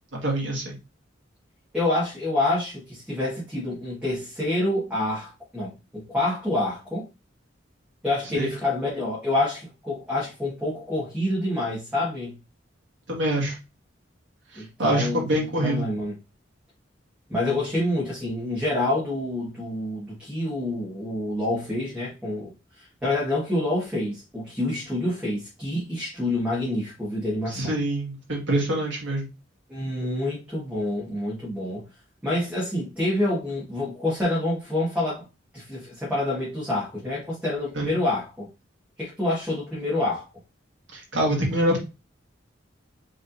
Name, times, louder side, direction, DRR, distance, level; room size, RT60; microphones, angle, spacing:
voice 1, 0.1-0.8 8.3-8.5 13.1-13.6 14.5-15.9 27.5-29.3 37.7-37.9 40.9-41.8, right 1 dB, 80° right, 2.0 m, -25 dB
voice 2, 1.7-7.0 8.0-12.4 14.5-15.3 15.6-16.1 17.3-27.8 29.7-31.8 32.2-35.2 35.5-38.5 39.0-40.3, left 1 dB, 5° right, 1.6 m, -27 dB
5.2 x 3.6 x 2.7 m
head